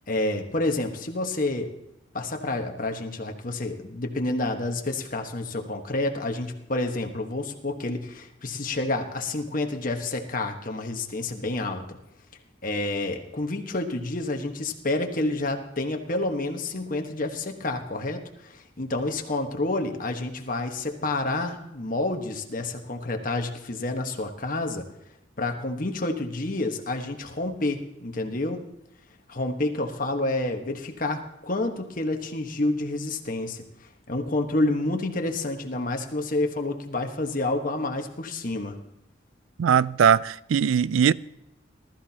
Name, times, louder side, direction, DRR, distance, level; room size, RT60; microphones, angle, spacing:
voice 1, 0.1-1.7 2.1-12.0 12.6-24.9 25.4-28.6 29.3-33.6 34.1-38.8, left 2 dB, 45° left, 1.3 m, -29 dB
voice 2, 39.6-41.1, right 7 dB, 90° right, 0.4 m, -20 dB
19.5 x 13.5 x 2.9 m
head